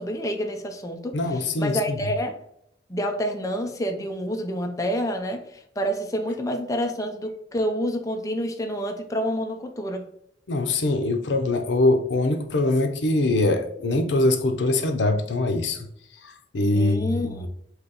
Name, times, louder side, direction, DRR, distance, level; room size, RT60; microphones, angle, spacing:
voice 1, 0.0-1.2 1.6-2.4 2.9-10.0 16.7-17.5, equal, 20° left, 4 dB, 0.5 m, -28 dB
voice 2, 1.1-2.0 10.5-15.9 16.2-17.5, left 2 dB, 80° left, 7 dB, 0.6 m, -23 dB
3.9 x 2.9 x 4.0 m, 0.73 s
head